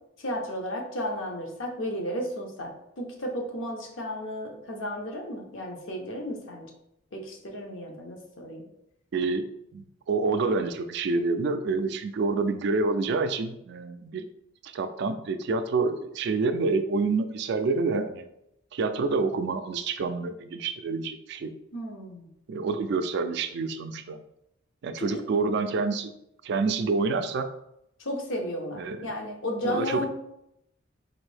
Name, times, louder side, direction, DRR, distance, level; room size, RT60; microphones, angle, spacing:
voice 1, 0.2-2.7 3.0-6.7 7.1-8.6 21.7-22.3 25.0-25.1 28.0-30.1, equal, 70° left, 2 dB, 0.8 m, -33 dB
voice 2, 9.1-9.5 9.7-14.3 14.6-18.3 18.7-21.5 22.5-24.2 24.8-26.1 26.4-27.5 28.8-29.0 29.6-30.1, right 4 dB, 55° right, 9 dB, 0.3 m, -27 dB
3.9 x 2.6 x 3.3 m, 0.81 s
head